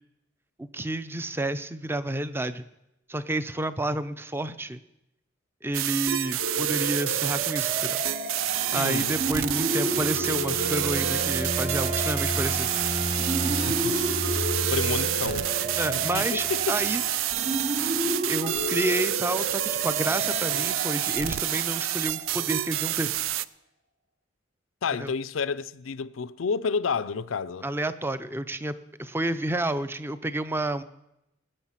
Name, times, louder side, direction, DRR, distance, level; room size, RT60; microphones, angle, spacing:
voice 1, 0.6-2.6 3.1-4.8 5.6-8.0 8.7-12.7 15.8-17.0 17.7-18.0 18.3-23.1 25.0-25.1 27.6-30.8, right 1 dB, 10° right, 0.5 m, -30 dB
sound 1, 5.7-23.5, right 13 dB, 85° right, 0.4 m, -28 dB
sound 2, 6.4-22.8, right 1 dB, 55° right, 1.1 m, -32 dB
voice 2, 8.7-9.2 13.4-14.0 14.7-16.8 24.8-27.7, left 5 dB, 85° left, 0.5 m, -30 dB
sound 3, 8.8-16.9, equal, 30° right, 2.6 m, -34 dB
19.5 x 8.8 x 5.8 m
head